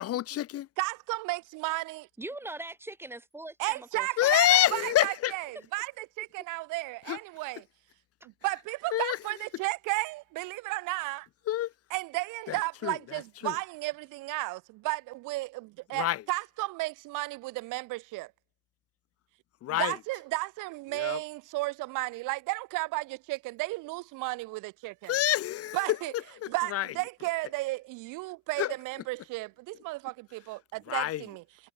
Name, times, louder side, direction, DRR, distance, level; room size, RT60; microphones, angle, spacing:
voice 1, 0.0-0.7 4.2-5.3 7.1-7.2 8.9-9.2 11.5-11.7 12.5-13.6 15.9-16.2 19.6-20.0 20.9-21.2 25.1-25.9 26.1-26.9 28.6-28.7 30.9-31.2, left 13 dB, 50° left, 0.8 m, -28 dB
voice 2, 0.8-2.0 3.6-7.6 8.4-11.3 11.9-18.3 19.7-25.1 25.7-26.1 26.5-31.4, right 22 dB, 85° right, 0.5 m, -34 dB
voice 3, 2.2-4.9, right 2 dB, 10° right, 1.9 m, -41 dB
cardioid pair, 155°, 31 cm